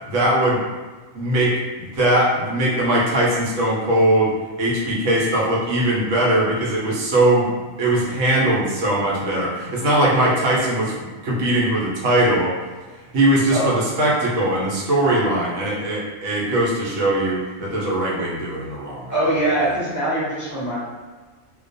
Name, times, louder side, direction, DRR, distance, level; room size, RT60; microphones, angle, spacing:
voice 1, 0.1-0.6 1.1-4.3 4.6-7.5 7.8-12.5 13.1-19.1, right 1 dB, 70° right, -5 dB, 1.0 m, -20 dB
voice 2, 19.1-20.7, right 1 dB, 20° right, -11 dB, 0.6 m, -22 dB
2.3 x 2.2 x 2.5 m, 1.3 s
omnidirectional pair, 1.4 m